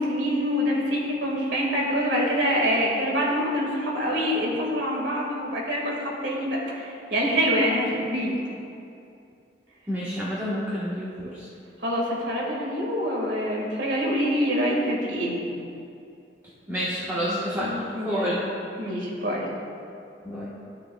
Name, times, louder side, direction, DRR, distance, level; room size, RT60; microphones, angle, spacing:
voice 1, 0.0-8.4 11.8-15.6 17.2-18.4 18.8-19.5, equal, 90° right, -3 dB, 2.0 m, -26 dB
voice 2, 9.9-11.5 16.7-18.4 20.2-20.5, equal, 10° right, -10 dB, 1.3 m, -29 dB
14.0 x 6.3 x 2.3 m, 2.6 s
head